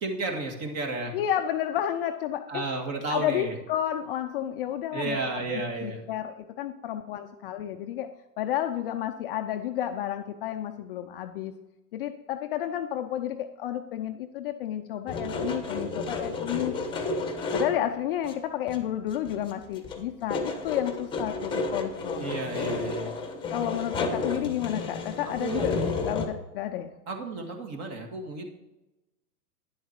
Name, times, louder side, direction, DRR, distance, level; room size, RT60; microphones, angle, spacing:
voice 1, 0.0-1.2 2.5-3.6 4.9-6.1 22.2-23.1 25.4-25.7 27.1-28.5, right 3 dB, 30° right, 4 dB, 2.0 m, -32 dB
voice 2, 1.1-2.7 3.1-5.2 5.5-11.6 11.9-16.7 17.5-22.3 23.5-26.9, left 11 dB, 35° left, 6 dB, 0.5 m, -31 dB
sound 1, 15.1-17.9 18.2-18.3 18.7-19.5 19.8-26.3, left 3 dB, 10° left, 1.1 m, -32 dB
10.5 x 7.7 x 4.5 m, 0.97 s
hypercardioid pair, 125°, 48 cm